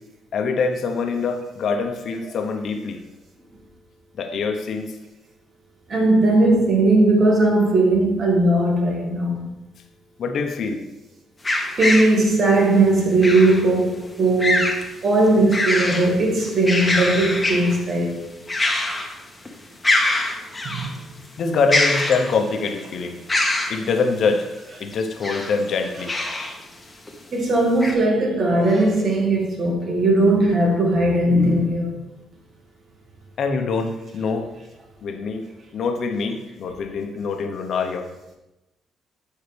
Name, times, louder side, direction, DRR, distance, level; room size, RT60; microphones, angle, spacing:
voice 1, 0.3-3.0 4.2-4.9 10.2-10.8 21.4-23.2 23.7-24.5 24.8-26.1 33.4-34.5 35.0-35.4 35.7-38.1, left 4 dB, 65° left, 1.0 m, -24 dB
voice 2, 5.9-9.5 11.8-18.2 20.6-20.9 27.3-32.0, right 2 dB, 55° right, 2.1 m, -18 dB
sound 1, 11.4-12.2 13.2-13.6 14.4-14.8 15.3-16.1 16.4-17.8 18.5-19.2 19.4-19.5 19.8-20.9 21.7-22.6 23.3-23.8 25.0-25.6 26.1-26.5 27.1-27.2 27.8-27.9, left 2 dB, 20° left, 1.5 m, -23 dB
12.5 x 5.7 x 3.4 m
cardioid pair, 90°, 0 cm